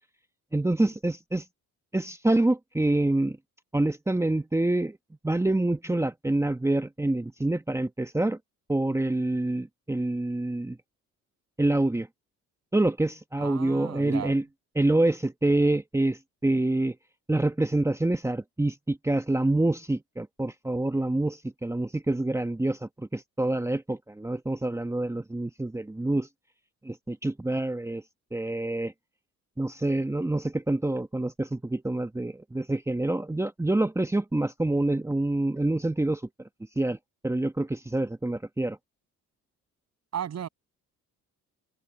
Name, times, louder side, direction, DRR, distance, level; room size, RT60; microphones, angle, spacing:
voice 1, 0.5-1.4 1.9-3.4 3.7-5.0 5.2-8.4 8.7-10.8 11.6-12.1 12.7-14.4 14.7-17.0 17.3-26.3 26.8-28.0 28.3-28.9 29.6-36.2 36.8-37.0 37.2-38.8, right 2 dB, 10° right, 1.1 m, -26 dB
voice 2, 13.4-14.4 40.1-40.5, right 9 dB, 60° right, 7.3 m, -35 dB
cardioid pair, 90°, 30 cm